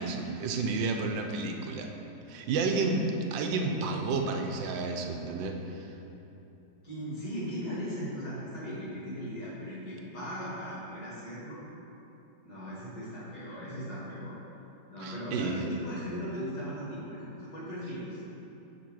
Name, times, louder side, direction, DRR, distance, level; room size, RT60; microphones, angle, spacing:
voice 1, 0.0-1.9 2.3-3.1 3.3-5.9 15.0-15.7, right 4 dB, 80° right, 3 dB, 1.3 m, -31 dB
voice 2, 2.7-3.0 6.8-11.6 12.4-14.3 14.9-18.2, equal, 60° left, -7 dB, 2.3 m, -38 dB
7.6 x 3.4 x 6.1 m, 2.9 s
omnidirectional pair, 2.0 m